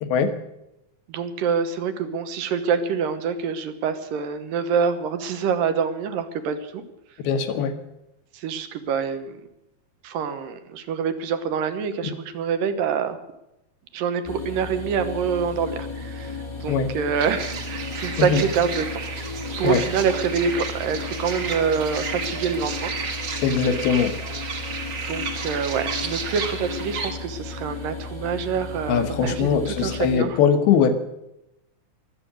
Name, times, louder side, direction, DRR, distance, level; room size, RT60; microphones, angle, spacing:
voice 1, 0.0-0.3 7.2-7.7 16.7-16.9 18.2-18.5 19.6-19.8 23.4-24.2 28.9-30.9, left 6 dB, 80° left, 7 dB, 3.2 m, -21 dB
voice 2, 1.1-6.8 8.3-9.4 10.0-13.2 13.9-18.9 19.6-22.9 25.0-30.4, right 6 dB, 70° right, 10 dB, 2.6 m, -26 dB
sound 1, 14.2-30.2, left 3 dB, 20° left, 0.7 m, -34 dB
sound 2, 17.2-27.1, right 5 dB, 45° right, 1.9 m, -32 dB
23.0 x 8.4 x 6.4 m, 0.89 s
omnidirectional pair, 4.4 m